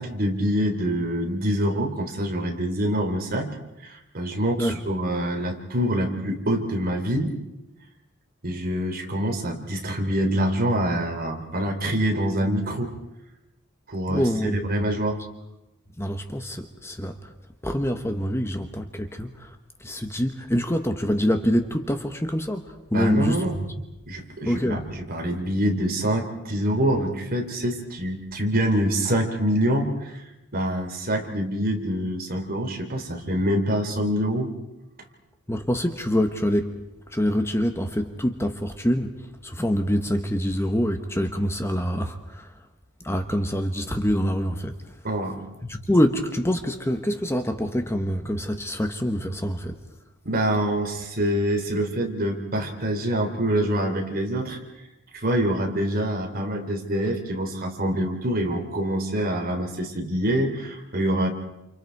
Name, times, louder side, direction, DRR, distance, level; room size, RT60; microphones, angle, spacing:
voice 1, 0.0-3.5 3.8-7.3 8.4-12.9 13.9-15.2 22.9-23.6 24.1-30.2 30.5-34.5 45.0-45.4 50.3-54.6 55.1-61.3, equal, 45° right, 3 dB, 3.6 m, -25 dB
voice 2, 14.1-15.0 16.0-17.3 17.6-19.5 19.8-23.8 24.4-24.8 35.5-36.7 37.1-42.5 43.0-44.7 45.6-49.7, equal, 10° left, 6 dB, 1.2 m, -25 dB
29.0 x 29.0 x 4.7 m, 0.94 s
head